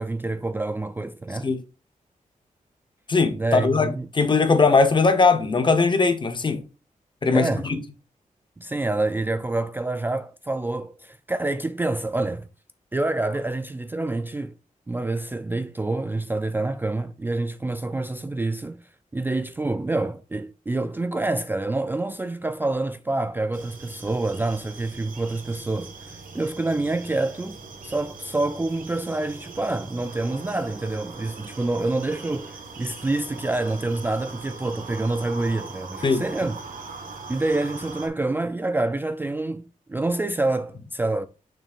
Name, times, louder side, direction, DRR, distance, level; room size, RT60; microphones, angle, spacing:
voice 1, 0.0-1.5 3.3-4.1 7.3-7.7 8.6-12.5 12.9-14.6 14.9-27.6 27.8-36.6 37.3-41.3, right 2 dB, 15° right, 0.3 m, -27 dB
voice 2, 3.1-6.6 7.2-7.8 36.0-36.2, left 4 dB, 35° left, 0.9 m, -20 dB
sound 1, 23.5-38.1, right 4 dB, 80° right, 1.7 m, -41 dB
6.6 x 6.2 x 2.5 m
wide cardioid pair, 160°, 14 cm